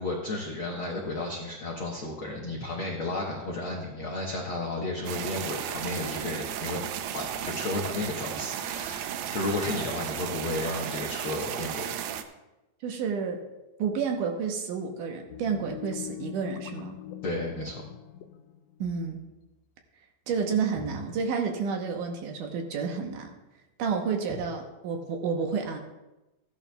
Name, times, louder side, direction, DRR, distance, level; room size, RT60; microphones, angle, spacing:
voice 1, 0.0-6.8 7.1-11.9 17.2-17.8 20.7-20.9 24.3-24.4, left 2 dB, 70° left, -2 dB, 1.2 m, -33 dB
sound 1, 5.1-12.2, right 10 dB, 90° right, 2.4 m, -34 dB
voice 2, 12.8-13.4 13.8-17.0 18.8-19.2 20.3-23.3 23.8-25.8, right 5 dB, 75° right, 3 dB, 2.3 m, -30 dB
sound 2, 15.3-19.6, left 11 dB, 90° left, 1.7 m, -43 dB
15.5 x 11.0 x 2.3 m, 1.0 s
omnidirectional pair, 4.0 m